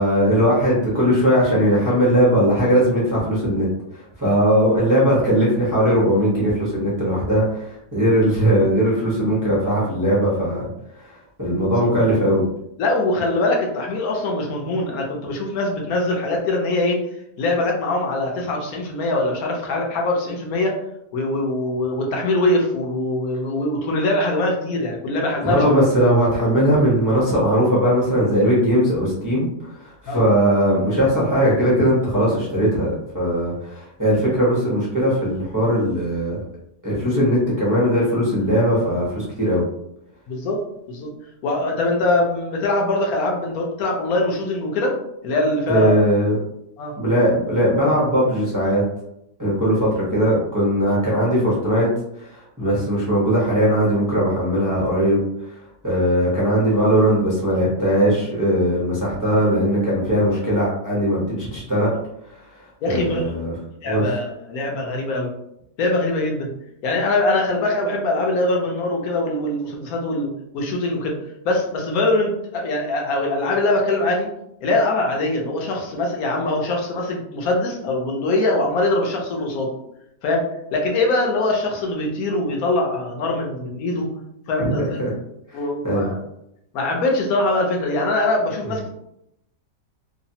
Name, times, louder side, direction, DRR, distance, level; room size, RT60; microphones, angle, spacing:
voice 1, 0.0-3.7 3.9-10.6 10.9-12.4 25.4-36.4 36.8-39.6 45.7-46.4 47.0-48.8 49.4-51.9 52.2-55.6 55.8-61.9 62.9-63.6 63.9-64.0 84.6-85.1 85.5-85.6 85.8-86.1, equal, 25° right, -8 dB, 0.4 m, -19 dB
voice 2, 12.8-17.0 17.4-20.8 21.1-25.8 30.1-30.2 40.3-40.6 40.9-41.1 41.4-45.0 45.2-46.1 46.8-46.9 52.6-52.7 62.8-63.3 63.8-65.3 65.8-66.5 66.8-71.1 71.4-74.3 74.6-79.7 80.2-84.1 84.5-85.0 85.5-86.2 86.7-88.9, left 2 dB, 65° left, 0 dB, 1.0 m, -22 dB
3.2 x 2.0 x 2.7 m, 0.79 s
omnidirectional pair, 1.8 m